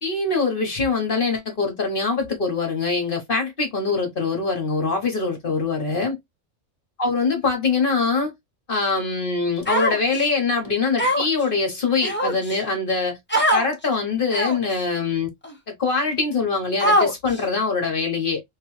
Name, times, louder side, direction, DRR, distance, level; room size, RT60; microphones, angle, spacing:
voice 1, 0.0-6.2 7.0-8.3 8.7-13.2 13.5-15.3 15.7-18.4, left 4 dB, 50° left, 1.1 m, -23 dB
Human voice, 9.7-10.3 11.0-11.4 12.0-12.6 13.3-13.7 14.3-14.7 15.4-15.5 16.8-17.4, equal, 10° left, 0.8 m, -21 dB
3.2 x 2.9 x 3.0 m
omnidirectional pair, 1.3 m